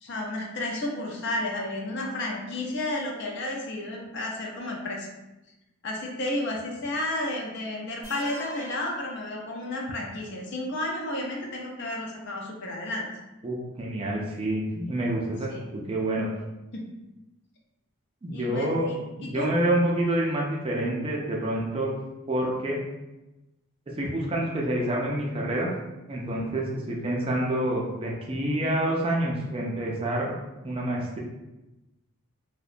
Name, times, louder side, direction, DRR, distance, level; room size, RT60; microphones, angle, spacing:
voice 1, 0.0-5.1 5.8-13.1 15.5-15.6 16.7-16.9 18.3-19.5, left 1 dB, 50° left, 0 dB, 0.4 m, -32 dB
sound 1, 8.0-10.0, equal, 10° right, 0.7 m, -44 dB
voice 2, 13.4-15.5 15.9-16.3 18.2-18.9 19.2-21.9 22.3-22.8 24.0-25.7 26.1-30.3 30.6-31.2, right 1 dB, 25° right, -2 dB, 0.3 m, -27 dB
2.7 x 2.1 x 2.4 m, 1.0 s
head